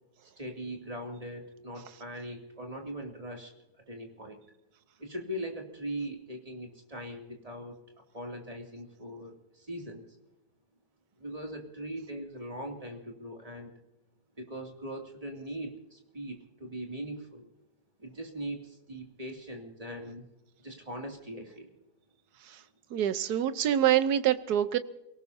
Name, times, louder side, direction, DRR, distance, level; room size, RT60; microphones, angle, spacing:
voice 1, 0.4-3.5 3.9-4.4 5.0-7.8 8.1-10.0 11.2-13.7 14.4-17.5 18.0-20.2 20.6-21.7, right 1 dB, 20° right, 1 dB, 2.6 m, -40 dB
voice 2, 22.9-24.8, right 11 dB, 70° right, 13 dB, 1.3 m, -25 dB
29.0 x 18.0 x 2.7 m, 0.94 s
omnidirectional pair, 1.8 m